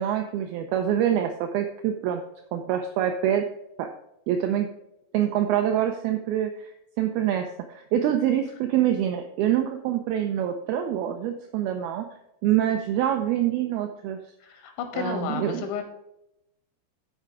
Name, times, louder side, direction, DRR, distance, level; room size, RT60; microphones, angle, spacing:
voice 1, 0.0-2.2 2.5-3.4 3.8-3.9 4.3-4.7 5.1-12.1 12.4-14.2 14.9-15.6, right 10 dB, 80° right, 5 dB, 2.2 m, -25 dB
voice 2, 14.4-15.8, left 6 dB, 85° left, 5 dB, 3.8 m, -32 dB
12.0 x 5.1 x 4.8 m, 0.83 s
omnidirectional pair, 5.1 m